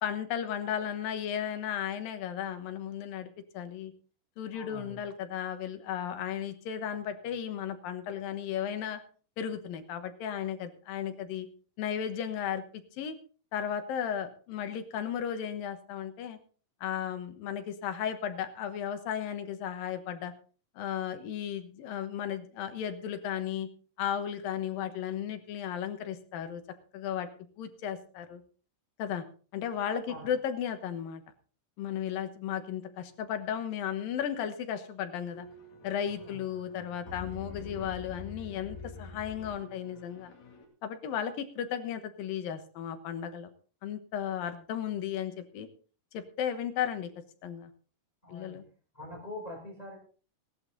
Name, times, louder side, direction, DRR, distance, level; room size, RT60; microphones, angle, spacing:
voice 1, 0.0-3.9 4.4-9.0 9.4-11.5 11.8-12.6 13.0-13.2 13.5-16.4 16.8-20.3 20.8-23.7 24.0-26.6 26.9-27.3 27.6-28.4 29.0-29.2 29.5-31.2 31.8-35.5 35.8-40.3 40.8-43.5 43.8-45.7 46.1-47.1 47.4-47.7 48.3-48.6, left 9 dB, 75° left, 9 dB, 2.9 m, -35 dB
voice 2, 4.5-5.0 30.1-30.3 36.2-36.4 48.2-48.6 48.9-50.0, left 1 dB, 10° left, 0 dB, 5.0 m, -44 dB
sound 1, 35.2-40.6, left 3 dB, 55° left, 3.7 m, -46 dB
17.5 x 11.5 x 4.0 m, 0.39 s
omnidirectional pair, 4.2 m